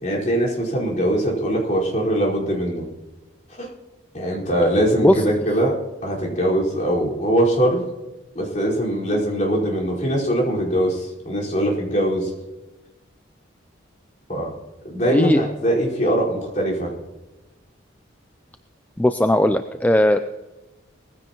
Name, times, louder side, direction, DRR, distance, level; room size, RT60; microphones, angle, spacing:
voice 1, 0.0-2.8 3.6-3.7 4.1-5.7 6.0-7.9 8.3-12.3 14.3-14.5 14.8-16.9, right 1 dB, 40° left, -5 dB, 4.7 m, -22 dB
voice 2, 15.1-15.4 19.0-20.2, left 1 dB, 10° left, 8 dB, 0.4 m, -17 dB
19.5 x 15.5 x 3.0 m, 1.1 s
head